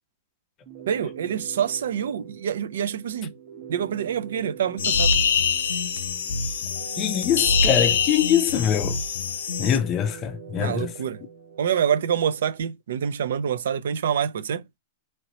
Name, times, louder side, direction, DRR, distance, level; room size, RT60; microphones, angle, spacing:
sound 1, 0.6-12.6, right 6 dB, 35° right, 1.1 m, -43 dB
voice 1, 0.9-3.3 3.7-5.2 10.5-11.2 11.6-14.6, right 8 dB, 80° right, 0.4 m, -26 dB
sound 2, 4.8-9.8, left 5 dB, 90° left, 0.6 m, -24 dB
voice 2, 7.0-9.0 9.6-10.9, left 9 dB, 20° left, 0.4 m, -23 dB
2.9 x 2.8 x 2.9 m
supercardioid pair, 170°, 0 cm